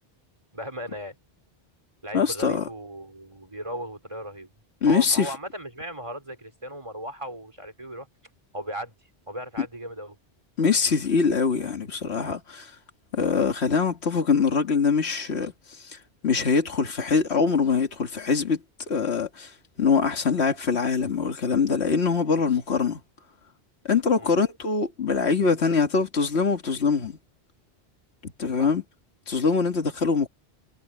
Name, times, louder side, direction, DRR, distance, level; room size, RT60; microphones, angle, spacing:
voice 1, 0.5-1.2 2.0-4.5 4.9-8.1 8.5-9.0 9.3-10.2 24.2-24.3 28.6-28.7, equal, 30° right, 4.0 m, -36 dB
voice 2, 2.1-2.7 4.8-5.3 9.6-9.7 10.6-12.8 13.1-23.0 23.8-27.2 28.4-28.8 29.3-30.3, left 5 dB, 75° left, 2.2 m, -23 dB
omnidirectional pair, 1.1 m